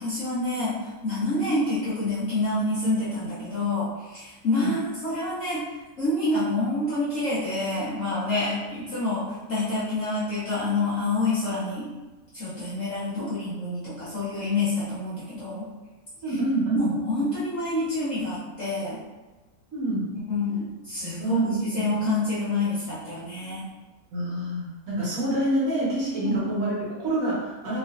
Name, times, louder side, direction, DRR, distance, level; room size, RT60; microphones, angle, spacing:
voice 1, 0.0-0.8 1.0-5.7 6.0-11.9 12.3-15.7 16.7-19.0 20.3-23.7 26.2-26.4, left 2 dB, 55° left, -11 dB, 1.2 m, -27 dB
voice 2, 16.2-16.9 19.7-20.1 21.2-22.0 24.1-27.8, right 2 dB, 60° right, -7 dB, 1.5 m, -27 dB
3.4 x 3.0 x 2.4 m, 1.2 s
omnidirectional pair, 1.7 m